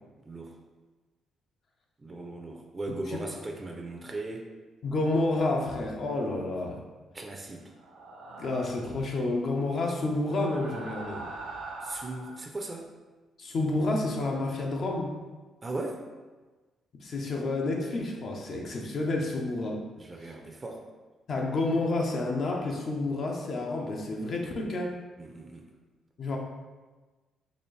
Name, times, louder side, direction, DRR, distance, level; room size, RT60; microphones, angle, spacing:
voice 1, 2.0-4.5 7.1-7.6 11.8-12.8 15.6-16.0 20.0-20.8 25.2-25.6, right 2 dB, 25° right, 2 dB, 0.4 m, -38 dB
voice 2, 2.9-3.4 4.8-6.8 8.4-11.3 13.4-15.1 16.9-19.8 20.2-20.3 21.3-25.0 26.2-26.4, left 2 dB, 55° left, 0 dB, 0.7 m, -30 dB
sound 1, 7.8-9.0 10.2-12.4, right 3 dB, 85° right, 0.6 m, -42 dB
4.1 x 2.5 x 3.2 m, 1.3 s
cardioid pair, 90°, 0 cm